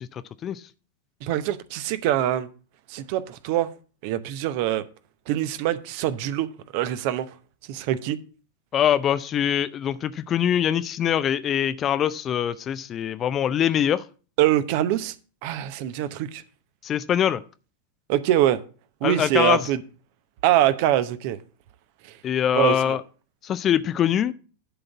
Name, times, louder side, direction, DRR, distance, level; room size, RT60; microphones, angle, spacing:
voice 1, 1.2-2.5 2.9-3.7 4.0-4.8 5.3-7.3 7.7-8.2 14.4-15.1 15.4-16.4 18.1-18.6 19.0-19.8 20.4-21.4 22.5-23.0, right 12 dB, 45° right, 0.7 m, -24 dB
voice 2, 8.7-14.0 16.8-17.4 19.0-19.7 22.2-23.0 23.4-24.3, left 9 dB, 30° left, 0.5 m, -23 dB
11.0 x 3.9 x 7.1 m
figure-of-eight pair, 90°, 0 cm